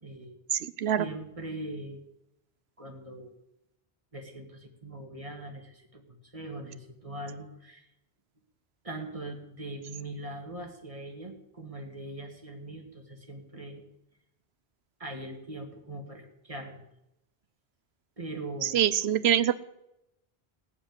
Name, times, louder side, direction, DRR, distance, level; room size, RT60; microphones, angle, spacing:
voice 1, 0.0-0.4 1.0-2.0 2.8-3.4 4.1-7.9 8.8-13.8 15.0-16.8 18.2-18.8, right 1 dB, 35° right, 3 dB, 2.2 m, -41 dB
voice 2, 0.5-1.1 18.6-19.6, right 10 dB, 85° right, 16 dB, 1.0 m, -25 dB
16.5 x 7.2 x 9.6 m, 0.88 s
omnidirectional pair, 1.0 m